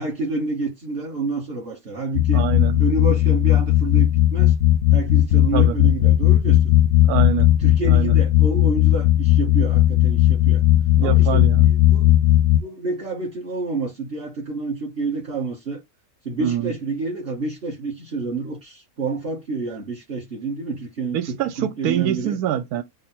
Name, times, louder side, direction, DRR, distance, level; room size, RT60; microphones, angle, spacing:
voice 1, 0.0-2.4 2.8-4.5 4.9-6.7 7.6-10.6 11.0-12.1 12.5-15.8 16.2-22.4, right 3 dB, 45° right, 1.1 m, -29 dB
sound 1, 2.1-12.6, left 14 dB, 65° left, 0.7 m, -16 dB
voice 2, 2.3-2.8 5.5-5.8 7.1-7.5 7.9-8.1 10.9-11.7 16.4-16.7 21.1-22.8, right 10 dB, 80° right, 1.1 m, -25 dB
3.6 x 2.0 x 4.2 m
omnidirectional pair, 1.6 m